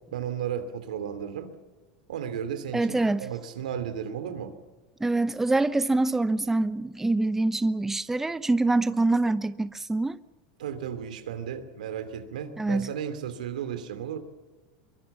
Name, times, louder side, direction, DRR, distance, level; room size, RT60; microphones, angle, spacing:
voice 1, 0.1-1.5 2.1-4.6 10.6-14.2, right 8 dB, 90° right, 2.8 m, -34 dB
voice 2, 2.7-3.3 5.0-10.2 12.6-12.9, right 2 dB, 10° right, 0.7 m, -25 dB
23.0 x 22.5 x 7.2 m
supercardioid pair, 110°, 4 cm